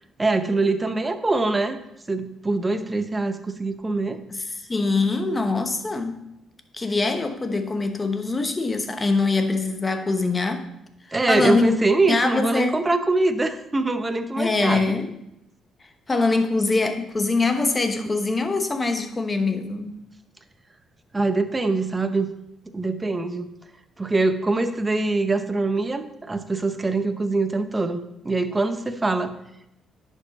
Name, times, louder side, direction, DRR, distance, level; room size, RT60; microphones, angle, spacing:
voice 1, 0.2-1.8 2.1-4.2 11.1-14.9 18.0-18.1 21.1-22.3 22.7-23.5 24.0-29.3, right 3 dB, 20° right, 9 dB, 0.8 m, -23 dB
voice 2, 4.7-6.2 6.7-10.7 11.3-11.7 12.1-12.8 14.4-15.2 16.1-19.9, left 3 dB, 25° left, 7 dB, 1.0 m, -23 dB
10.5 x 5.5 x 4.1 m, 0.84 s
cardioid pair, 90°, 0 cm